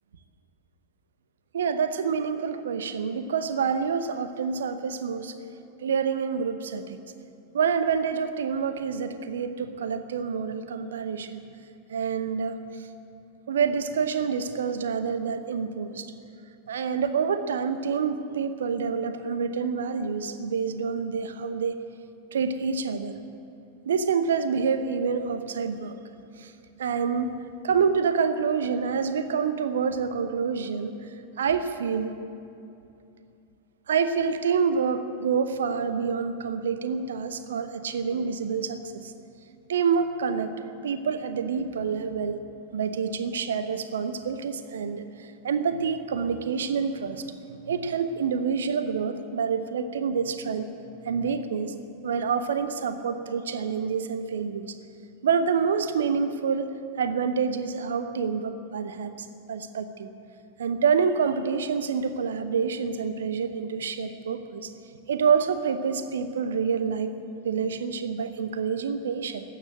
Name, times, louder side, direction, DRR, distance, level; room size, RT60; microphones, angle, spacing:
voice 1, 1.5-5.3 5.8-7.0 7.5-11.4 11.9-12.9 13.5-16.1 16.7-21.8 22.3-23.2 23.8-25.9 26.4-26.5 26.8-27.3 27.6-31.0 31.4-32.2 33.9-39.1 39.7-40.5 40.8-42.4 42.7-47.3 47.7-50.7 51.0-51.8 52.0-54.8 55.2-56.7 57.0-60.1 60.6-64.7 65.1-67.2 67.4-69.4, right 6 dB, 65° right, 10 dB, 0.9 m, -27 dB
14.5 x 9.4 x 9.6 m, 2.6 s
figure-of-eight pair, 90°, 0 cm